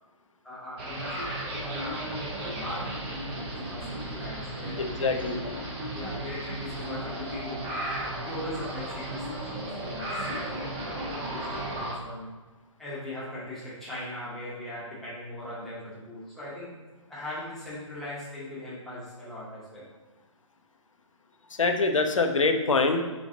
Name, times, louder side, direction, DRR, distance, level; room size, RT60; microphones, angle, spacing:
voice 1, 0.4-5.5 5.9-7.7 8.2-12.3 12.8-19.9, left 1 dB, ahead, -10 dB, 1.0 m, -40 dB
sound 1, 0.8-11.9, right 1 dB, 20° right, 0.6 m, -35 dB
voice 2, 4.8-5.5 21.5-23.0, left 3 dB, 70° left, 5 dB, 0.6 m, -25 dB
5.9 x 2.4 x 2.7 m, 1.3 s
figure-of-eight pair, 135°, 17 cm